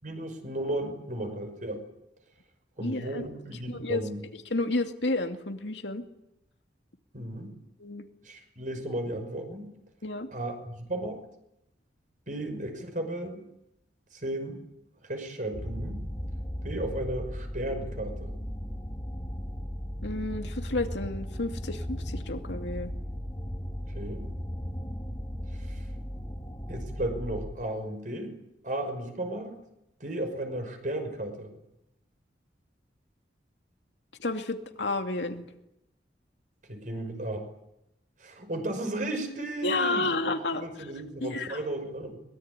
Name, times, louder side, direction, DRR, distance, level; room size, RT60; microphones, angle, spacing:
voice 1, 0.0-1.8 2.8-4.3 7.1-7.6 8.2-9.7 10.3-11.2 12.3-13.4 14.2-14.6 15.0-16.1 16.6-18.3 23.9-24.3 25.5-25.8 26.7-28.4 28.6-29.6 30.0-31.5 36.7-37.5 38.2-40.2 40.5-42.2, right 1 dB, 45° right, 6 dB, 5.9 m, -34 dB
voice 2, 2.8-3.3 3.7-4.1 4.5-6.0 7.8-8.0 10.0-10.3 20.0-22.9 34.2-35.4 39.6-40.7 41.2-41.6, left 2 dB, 80° left, 6 dB, 2.5 m, -31 dB
sound 1, 15.5-27.5, equal, 20° left, 2.3 m, -36 dB
23.5 x 21.5 x 9.9 m, 0.85 s
head